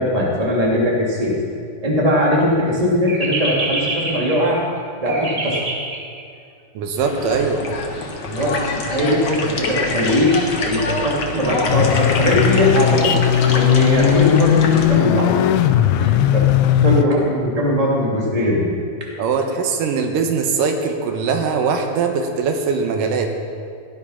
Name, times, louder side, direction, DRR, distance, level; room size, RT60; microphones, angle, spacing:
voice 1, 0.0-1.4 1.8-4.6 5.0-6.3 8.2-13.2 13.5-15.3 15.7-16.5 16.8-18.7, equal, 10° right, -3 dB, 2.2 m, -20 dB
voice 2, 6.8-7.6 19.2-23.3, right 5 dB, 80° right, 4 dB, 2.7 m, -21 dB
sound 1, 7.0-14.8, left 3 dB, 50° left, 1.3 m, -26 dB
sound 2, 11.7-17.0, left 11 dB, 80° left, 1.7 m, -17 dB
17.0 x 11.0 x 5.8 m, 2.3 s
omnidirectional pair, 3.8 m